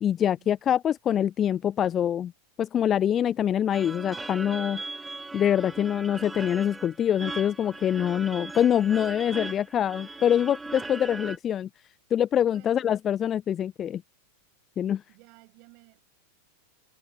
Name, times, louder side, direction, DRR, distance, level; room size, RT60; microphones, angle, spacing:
voice 1, 0.0-2.3 2.6-4.8 5.3-11.7 12.1-14.0 14.8-15.0, left 9 dB, 25° left, 0.3 m, -25 dB
sound 1, 3.7-11.4, right 3 dB, 10° right, 1.8 m, -39 dB
voice 2, 12.4-12.9 15.1-16.0, right 32 dB, 45° right, 7.5 m, -55 dB
figure-of-eight pair, 90°, 0 cm